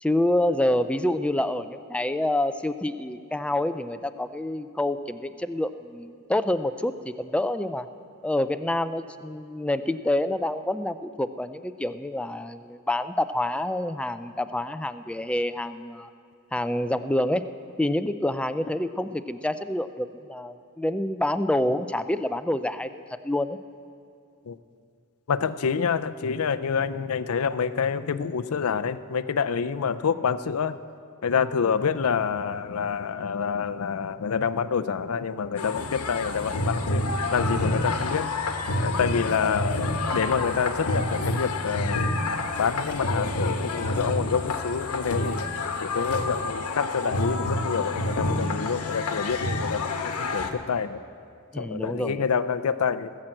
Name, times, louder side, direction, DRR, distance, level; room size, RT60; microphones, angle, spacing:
voice 1, 0.0-7.9 8.2-16.1 16.5-17.5 17.8-23.6 51.5-52.2, left 1 dB, 5° left, 10 dB, 0.4 m, -27 dB
voice 2, 25.3-30.8 31.2-42.2 42.6-45.4 45.8-51.0 51.6-53.1, left 6 dB, 70° left, 13 dB, 0.5 m, -27 dB
sound 1, 35.6-50.5, left 2 dB, 85° left, 1.1 m, -28 dB
18.0 x 7.4 x 7.7 m, 2.4 s
head